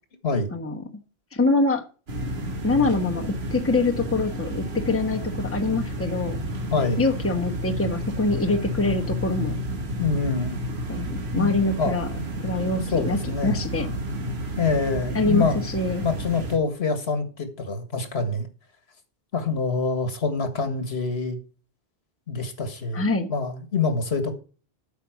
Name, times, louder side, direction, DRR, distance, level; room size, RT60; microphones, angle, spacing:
voice 1, 0.5-0.8 1.3-1.8 2.6-6.4 7.0-9.6 10.9-12.1 12.4-13.9 15.1-16.0 22.9-23.3, left 3 dB, 15° left, 3 dB, 1.1 m, -24 dB
sound 1, 2.1-16.6, equal, 75° right, 1.7 m, -31 dB
voice 2, 6.7-7.0 10.0-10.6 11.3-11.9 12.9-13.6 14.6-15.6 16.0-18.5 19.3-21.4 22.3-24.3, left 4 dB, 75° left, 9 dB, 1.8 m, -26 dB
8.5 x 5.8 x 5.8 m, 0.36 s
omnidirectional pair, 1.1 m